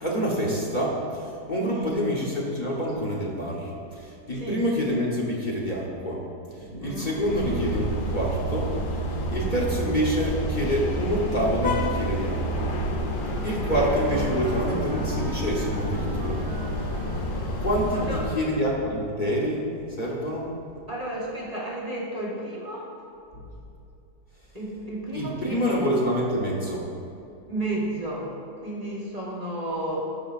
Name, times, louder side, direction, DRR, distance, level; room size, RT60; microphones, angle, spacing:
voice 1, 0.0-6.2 6.6-8.7 9.3-12.7 13.4-16.4 17.6-19.6 20.0-20.5 23.3-23.4 25.1-26.8, equal, 35° left, -4 dB, 1.0 m, -27 dB
voice 2, 6.8-7.2 17.9-18.3 20.9-22.9 24.5-25.8 27.5-30.1, right 1 dB, 25° right, -4 dB, 1.0 m, -32 dB
sound 1, 7.2-18.4, equal, 70° left, 0.4 m, -29 dB
Wind instrument woodwind instrument, 13.1-18.4, right 3 dB, 70° right, 1.0 m, -42 dB
14.0 x 5.2 x 2.5 m, 2.6 s
omnidirectional pair, 1.8 m